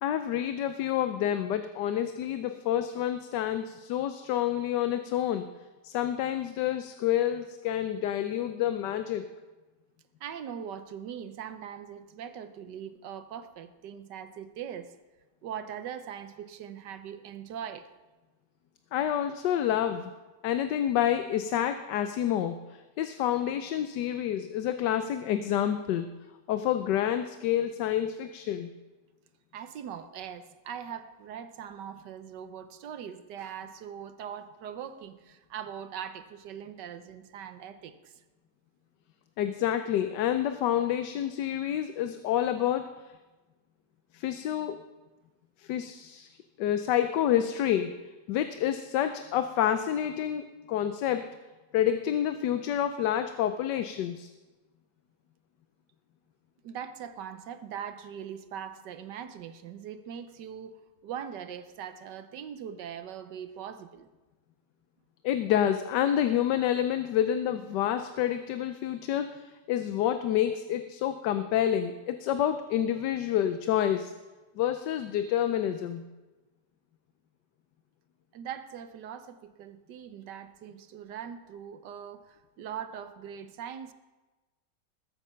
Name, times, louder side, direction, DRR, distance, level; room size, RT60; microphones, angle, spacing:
voice 1, 0.0-5.5 5.8-9.2 18.9-20.1 20.4-26.1 26.5-28.7 39.4-42.9 44.1-44.8 45.6-46.3 46.6-47.9 48.3-51.3 51.7-54.3 65.2-74.1 74.6-76.1, left 10 dB, 85° left, 9 dB, 1.3 m, -28 dB
voice 2, 10.2-15.0 15.4-17.9 29.5-38.2 56.6-64.1 78.3-83.9, right 8 dB, 80° right, 10 dB, 1.4 m, -41 dB
20.0 x 8.4 x 5.7 m, 1.2 s
omnidirectional pair, 1.8 m